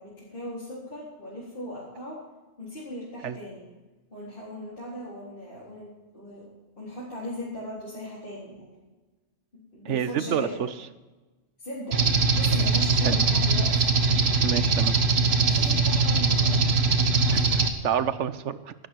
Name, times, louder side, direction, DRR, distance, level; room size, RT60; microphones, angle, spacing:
voice 1, 0.0-2.2 2.6-3.6 4.1-6.5 6.8-8.8 9.5-10.6 11.6-12.0 12.3-13.9 15.5-16.6, left 1 dB, 50° left, -9 dB, 4.3 m, -38 dB
voice 2, 9.9-10.7 13.0-13.2 14.4-15.0 17.3-18.7, right 9 dB, 90° right, 14 dB, 1.1 m, -28 dB
sound 1, 11.9-17.7, right 4 dB, 65° right, 1.4 m, -22 dB
17.0 x 12.0 x 4.6 m, 1.2 s
omnidirectional pair, 1.2 m